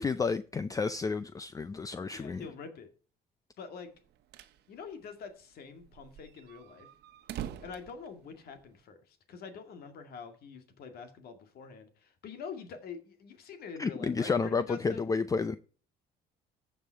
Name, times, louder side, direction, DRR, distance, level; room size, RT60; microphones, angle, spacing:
voice 1, 0.0-2.5 13.8-15.6, left 4 dB, 20° left, 0.5 m, -31 dB
voice 2, 2.1-2.9 3.6-3.9 4.7-6.9 7.6-15.0, left 5 dB, 65° left, 2.2 m, -45 dB
sound 1, 4.0-4.6 4.9-5.0 5.2-5.3 5.8-8.8, right 11 dB, 80° right, 1.0 m, -44 dB
15.0 x 5.6 x 4.6 m
cardioid pair, 110°, 17 cm